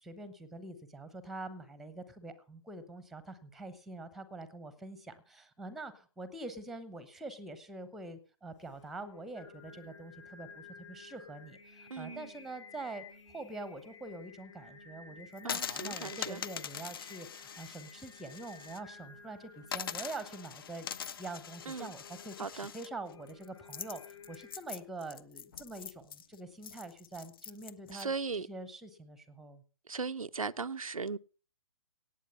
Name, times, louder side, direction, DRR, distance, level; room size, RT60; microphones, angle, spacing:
voice 1, 0.0-13.0 13.3-29.6, right 2 dB, ahead, 0.9 m, -45 dB
Singing, 8.6-24.6, left 4 dB, 60° left, 6.3 m, -55 dB
voice 2, 11.9-12.3 15.4-16.4 21.7-21.9 22.4-22.7 27.9-28.5 29.9-31.2, right 4 dB, 80° right, 0.5 m, -37 dB
sound 1, 15.4-18.8 19.1-19.2 19.7-28.0, left 8 dB, 40° left, 0.7 m, -43 dB
17.5 x 7.8 x 5.5 m
figure-of-eight pair, 130°, 18 cm